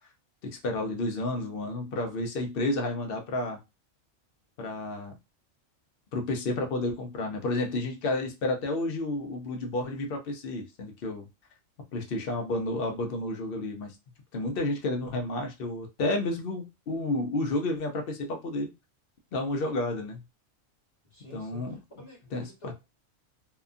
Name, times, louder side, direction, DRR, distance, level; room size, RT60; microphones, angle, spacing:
voice 1, 0.4-3.6 4.6-5.1 6.1-11.3 11.9-13.9 14.3-18.7 19.3-20.2 21.3-21.8 22.3-22.7, left 2 dB, 55° left, 3 dB, 0.7 m, -31 dB
voice 2, 21.1-22.7, equal, 25° left, -3 dB, 1.2 m, -50 dB
2.8 x 2.3 x 2.5 m, 0.25 s
omnidirectional pair, 1.3 m